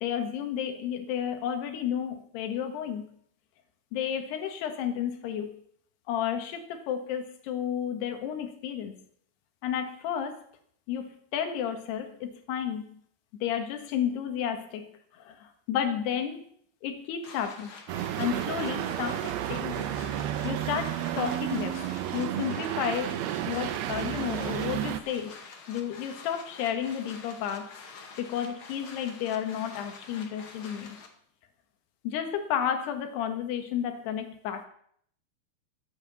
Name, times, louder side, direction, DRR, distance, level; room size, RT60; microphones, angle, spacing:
voice 1, 0.0-3.1 3.9-5.6 6.1-9.0 9.6-10.4 10.9-13.0 13.3-14.9 15.1-16.4 16.8-17.7 18.2-19.9 20.2-21.8 22.1-25.4 25.7-27.7 28.2-31.0 32.0-34.7, left 9 dB, 75° left, 6 dB, 3.4 m, -32 dB
sound 1, 17.2-31.1, left 5 dB, 90° left, 1.1 m, -47 dB
sound 2, 17.9-25.0, right 12 dB, 75° right, 2.4 m, -32 dB
13.0 x 8.4 x 7.0 m, 0.64 s
omnidirectional pair, 4.9 m